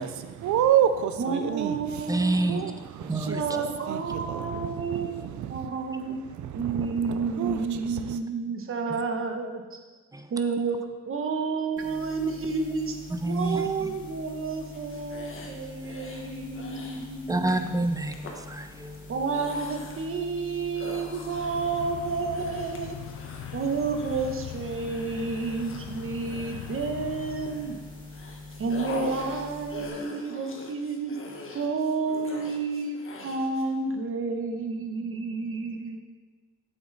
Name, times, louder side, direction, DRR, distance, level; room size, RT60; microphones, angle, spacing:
voice 1, 0.0-2.2 2.5-5.7 6.4-8.2, right 10 dB, 70° right, 10 dB, 0.6 m, -29 dB
voice 2, 1.2-2.6 3.2-6.2 6.5-9.6 10.3-10.8 11.1-12.9 13.3-17.6 19.1-23.0 23.5-27.8 28.6-31.2 31.5-33.0 33.2-36.0, right 4 dB, 45° right, 5 dB, 1.2 m, -30 dB
voice 3, 2.1-2.6 3.0-3.4 8.9-9.0 10.1-10.2 13.1-13.9 17.3-19.1, right 2 dB, 10° right, 7 dB, 0.7 m, -28 dB
sound 1, 11.8-29.9, left 2 dB, 25° left, 2.6 m, -44 dB
sound 2, 14.7-16.2 16.5-17.0 17.5-17.7 18.1-18.4 19.0-20.1 20.8-27.7 28.1-33.6, left 2 dB, 45° left, 1.6 m, -43 dB
sound 3, 21.3-28.1, left 14 dB, 80° left, 0.5 m, -42 dB
7.7 x 7.7 x 4.1 m, 1.3 s
cardioid pair, 90°, 30 cm